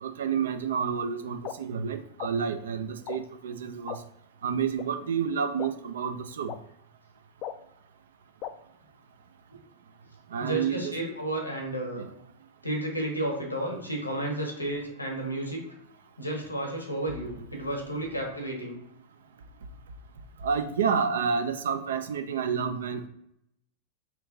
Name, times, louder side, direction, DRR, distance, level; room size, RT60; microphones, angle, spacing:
voice 1, 0.0-4.0 4.4-6.5 10.3-10.9 12.0-12.1 20.4-23.1, right 6 dB, 65° right, 8 dB, 0.4 m, -29 dB
sound 1, 1.4-1.5 2.2-2.3 3.1-3.2 3.9-4.0 4.8-4.9 5.6-5.7 6.5-6.6 7.4-7.5 8.4-8.5, left 11 dB, 40° left, 0.3 m, -35 dB
voice 2, 10.4-12.1 12.6-15.6 16.2-18.8, right 1 dB, 90° left, 2 dB, 1.1 m, -32 dB
4.3 x 2.6 x 2.6 m, 0.76 s
figure-of-eight pair, 90°, 0 cm